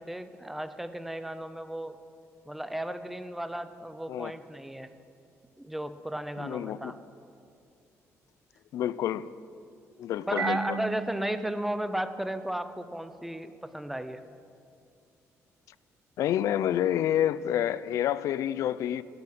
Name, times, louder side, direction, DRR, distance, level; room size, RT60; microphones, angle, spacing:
voice 1, 0.0-2.0 2.5-4.9 5.6-7.0 10.3-14.2, right 1 dB, 5° right, 0.5 m, -34 dB
voice 2, 6.4-6.9 8.7-9.3 10.0-10.8 16.2-19.0, left 11 dB, 70° left, 0.4 m, -28 dB
Marimba xylophone, 10.4-13.0, right 6 dB, 50° right, 1.4 m, -38 dB
12.0 x 11.5 x 7.7 m
cardioid pair, 160°, 6 cm